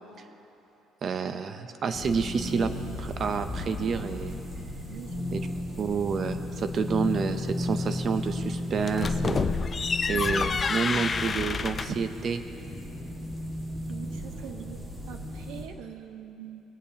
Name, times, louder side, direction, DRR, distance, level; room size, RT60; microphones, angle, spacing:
voice 1, 1.0-2.7 3.0-4.4 5.3-5.4 5.8-9.5 10.1-12.4, right 5 dB, 35° right, 9 dB, 0.6 m, -29 dB
sound 1, 1.9-15.6, left 1 dB, 15° right, 2.0 m, -35 dB
voice 2, 4.9-5.5 13.9-16.6, right 9 dB, 80° right, 5 dB, 0.9 m, -44 dB
sound 2, 8.8-12.1, left 5 dB, 25° left, 0.3 m, -28 dB
20.0 x 8.4 x 2.9 m, 2.9 s
cardioid pair, 145°, 0 cm